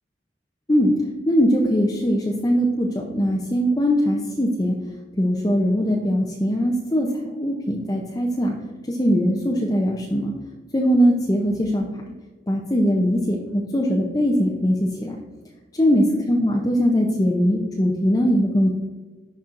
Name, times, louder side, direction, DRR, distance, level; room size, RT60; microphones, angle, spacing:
voice 1, 1.3-4.7 5.2-8.5 8.9-10.3 10.7-11.9 12.5-15.2 15.8-18.7, equal, 20° left, -1 dB, 0.5 m, -21 dB
11.5 x 4.3 x 2.5 m, 1.3 s
head